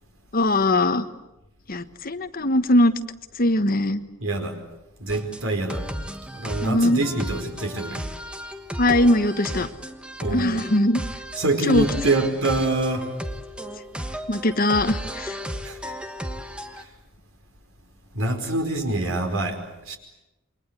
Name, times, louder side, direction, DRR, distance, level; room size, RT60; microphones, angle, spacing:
voice 1, 0.3-1.1 1.7-2.9 3.3-4.0 6.6-7.0 8.8-9.7 10.3-11.0 11.6-11.8 14.3-15.4, left 1 dB, 45° left, 10 dB, 1.3 m, -20 dB
voice 2, 4.2-4.6 5.0-5.8 6.3-8.0 10.2-10.6 11.4-13.1 15.6-15.8 16.8-16.9 18.1-20.0, right 2 dB, 85° right, 5 dB, 4.9 m, -25 dB
sound 1, 5.1-16.8, equal, 5° right, 1.4 m, -34 dB
28.5 x 24.0 x 8.3 m, 0.96 s
head